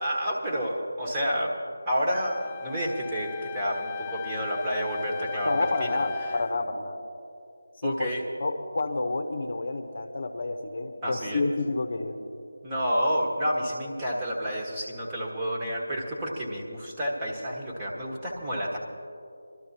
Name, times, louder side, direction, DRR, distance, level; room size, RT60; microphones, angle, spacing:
voice 1, 0.0-1.5 1.8-6.0 6.3-6.4 7.8-8.2 11.0-11.4 12.6-18.8, equal, 15° right, -4 dB, 1.4 m, -29 dB
Wind instrument woodwind instrument, 2.1-6.6, left 9 dB, 20° left, 0.3 m, -38 dB
voice 2, 5.4-6.9 7.8-8.1 8.4-12.2, left 2 dB, 50° left, 6 dB, 0.8 m, -29 dB
25.0 x 12.5 x 2.9 m, 2.5 s
figure-of-eight pair, 160°, 0 cm